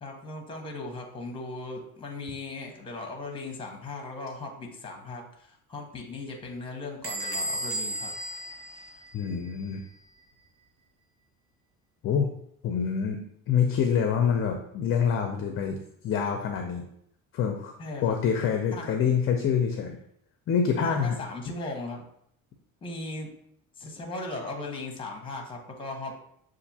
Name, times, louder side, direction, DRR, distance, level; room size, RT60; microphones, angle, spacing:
voice 1, 0.0-8.1 8.9-9.0 17.8-18.2 18.7-19.0 20.8-22.1 22.8-23.3 23.8-26.1, left 2 dB, 15° left, 1 dB, 0.8 m, -38 dB
Bell / Squeak, 7.0-9.6, right 1 dB, 40° right, 0.7 m, -34 dB
voice 2, 9.1-9.8 12.0-12.3 12.6-13.2 13.5-15.8 16.0-16.8 17.3-17.7 18.0-20.0 20.5-21.2, left 7 dB, 40° left, 4 dB, 0.4 m, -26 dB
6.8 x 2.5 x 2.7 m, 0.70 s
cardioid pair, 150°, 35 cm